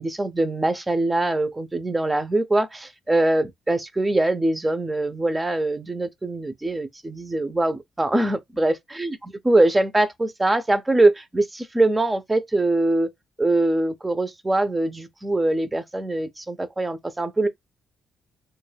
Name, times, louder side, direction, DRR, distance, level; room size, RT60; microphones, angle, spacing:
voice 1, 0.0-9.2 9.4-13.1 13.4-17.5, right 2 dB, 15° right, 0.5 m, -23 dB
2.2 x 2.1 x 3.2 m
cardioid pair, 90°, 0 cm